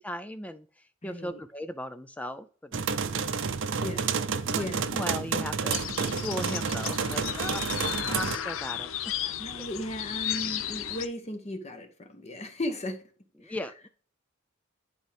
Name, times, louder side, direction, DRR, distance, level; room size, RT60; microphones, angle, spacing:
voice 1, 0.0-2.9 4.4-8.9 9.2-9.7 13.4-13.9, left 1 dB, 5° left, 0.3 m, -38 dB
voice 2, 1.0-1.4 3.8-4.1 4.5-5.0 9.2-13.0 13.4-13.6, left 1 dB, 35° left, 1.0 m, -36 dB
sound 1, 2.7-8.4, right 5 dB, 65° right, 0.6 m, -30 dB
sound 2, 5.7-11.1, left 10 dB, 85° left, 0.6 m, -34 dB
10.5 x 4.4 x 3.4 m
head